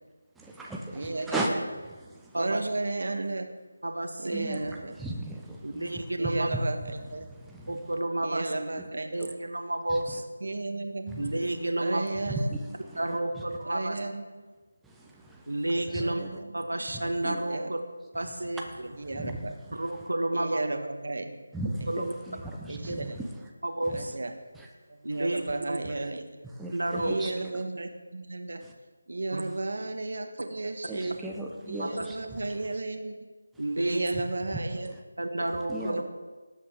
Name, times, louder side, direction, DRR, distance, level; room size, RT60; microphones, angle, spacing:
voice 1, 0.4-1.6 1.9-2.4 4.3-6.3 7.2-7.8 8.8-8.9 9.2-9.3 9.9-10.2 11.1-11.3 12.3-13.0 14.8-16.3 16.9-17.4 18.7-20.0 21.5-23.5 23.9-24.1 24.5-24.7 26.5-27.5 28.6-28.7 29.4-29.5 30.9-32.5 34.5-34.6 34.9-35.0 35.7-36.0, right 2 dB, 5° right, -2 dB, 0.8 m, -37 dB
voice 2, 0.9-1.4 2.4-3.5 4.2-4.9 6.2-7.3 8.2-9.1 10.4-11.2 11.8-12.6 13.7-14.2 15.9-16.5 17.5-17.7 19.0-19.6 20.3-21.3 22.7-23.2 23.9-24.3 24.9-26.3 27.0-28.6 29.1-31.2 31.7-33.1 33.8-34.9 35.9-36.0, right 2 dB, 60° right, 6 dB, 1.4 m, -33 dB
voice 3, 2.3-2.7 3.8-4.5 5.6-6.5 7.7-8.5 9.1-10.3 11.2-12.1 12.9-14.0 15.5-16.2 16.5-17.8 18.1-18.6 19.7-20.6 21.9-22.1 22.9-23.0 23.6-24.2 25.0-25.8 26.7-27.2 29.3-29.4 31.8-32.1 33.6-34.0 35.2-36.0, right 1 dB, 75° right, 6 dB, 1.5 m, -30 dB
18.5 x 8.3 x 3.7 m, 1.3 s
figure-of-eight pair, 160°, 0 cm